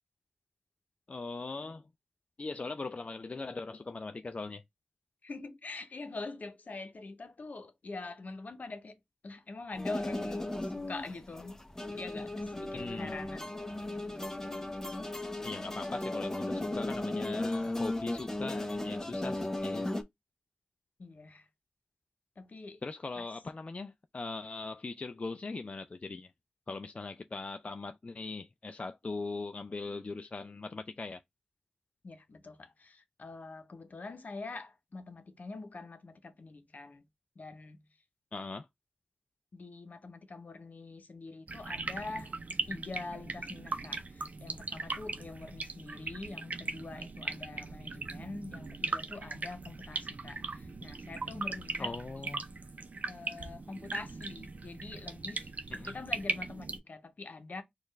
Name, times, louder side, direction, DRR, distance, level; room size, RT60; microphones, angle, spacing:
voice 1, 1.1-1.8 2.4-4.6 12.7-13.2 15.4-19.9 22.8-26.3 26.7-31.2 38.3-38.7 51.8-52.4 55.7-55.9, left 3 dB, 45° left, 0.3 m, -40 dB
voice 2, 5.2-9.0 9.2-11.6 11.9-14.2 21.0-21.5 22.4-22.8 23.2-23.3 32.0-37.0 37.4-37.8 39.5-42.3 42.7-52.3 53.1-55.5 55.9-57.6, left 3 dB, 65° left, 0.8 m, -44 dB
sound 1, 9.7-20.0, left 1 dB, 20° left, 0.7 m, -36 dB
sound 2, 41.5-56.8, right 3 dB, 60° right, 0.6 m, -39 dB
4.3 x 2.4 x 3.2 m
cardioid pair, 45°, 3 cm